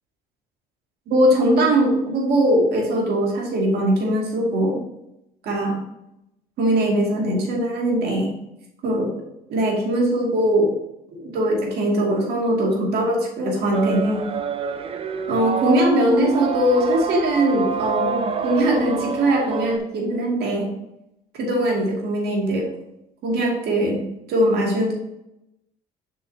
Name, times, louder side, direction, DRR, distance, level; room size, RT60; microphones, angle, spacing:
voice 1, 1.1-4.8 5.4-5.8 6.6-8.4 8.8-9.1 9.5-10.8 11.1-14.3 15.3-20.7 21.4-22.7 23.2-24.9, right 1 dB, 70° right, -1 dB, 2.2 m, -21 dB
sound 1, 13.7-19.8, right 5 dB, 35° right, 0.6 m, -27 dB
7.7 x 6.5 x 2.7 m, 0.85 s
cardioid pair, 110°, 17 cm